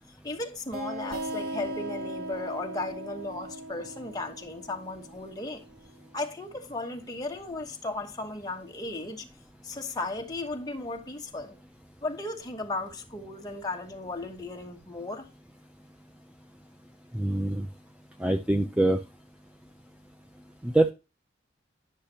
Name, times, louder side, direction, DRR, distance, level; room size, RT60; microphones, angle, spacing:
voice 1, 0.2-5.6 6.1-9.3 9.6-11.5 12.0-15.3, left 2 dB, 20° left, 1.1 m, -35 dB
sound 1, 0.7-6.1, right 1 dB, 45° right, 0.8 m, -38 dB
voice 2, 17.1-17.7 18.2-19.0 20.6-20.9, right 1 dB, 5° right, 0.4 m, -24 dB
10.5 x 6.5 x 2.8 m
head